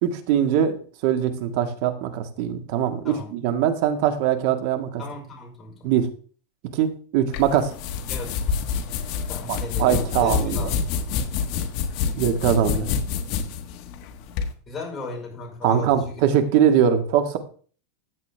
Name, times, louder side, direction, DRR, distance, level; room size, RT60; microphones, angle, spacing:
voice 1, 0.0-5.0 5.8-6.1 6.7-7.7 9.5-10.7 12.2-12.9 15.6-17.4, right 9 dB, 50° right, 7 dB, 1.8 m, -22 dB
voice 2, 5.0-5.9 8.1-8.4 9.3-10.9 14.7-16.2, left 3 dB, 15° left, -2 dB, 5.1 m, -36 dB
sound 1, 7.3-14.5, left 6 dB, 45° left, 1.4 m, -27 dB
14.0 x 8.3 x 3.5 m, 0.43 s
supercardioid pair, 160°, 0 cm